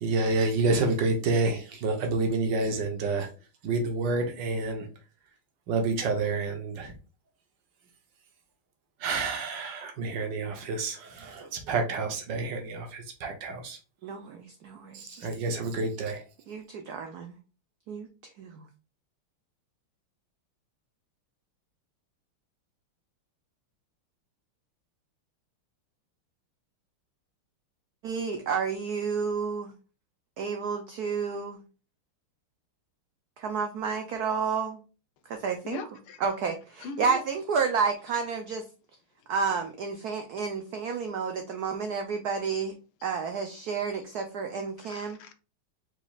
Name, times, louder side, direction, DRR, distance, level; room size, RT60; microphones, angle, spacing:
voice 1, 0.0-3.3 3.6-4.8 5.7-6.9 9.0-13.8 14.9-16.2, right 3 dB, 65° right, 1.4 m, -28 dB
voice 2, 14.0-15.3 16.5-17.4 17.9-18.7 28.0-29.7 30.4-31.6 33.4-34.8 35.3-35.8 36.2-38.7 39.3-42.7 43.0-45.2, right 5 dB, 85° right, 0.8 m, -31 dB
voice 3, 35.6-36.2 36.8-37.2 44.8-45.3, left 6 dB, 85° left, 1.6 m, -40 dB
4.6 x 4.0 x 2.3 m
omnidirectional pair, 2.3 m